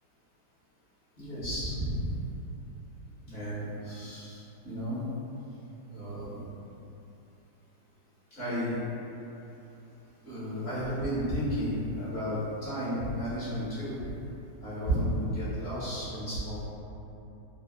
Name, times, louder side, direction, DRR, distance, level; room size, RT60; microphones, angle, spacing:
voice 1, 1.2-2.2 3.2-5.0 5.9-6.4 8.3-8.8 10.2-14.1 14.6-16.6, equal, 40° left, -13 dB, 1.2 m, -33 dB
3.8 x 2.4 x 2.3 m, 2.9 s
omnidirectional pair, 1.9 m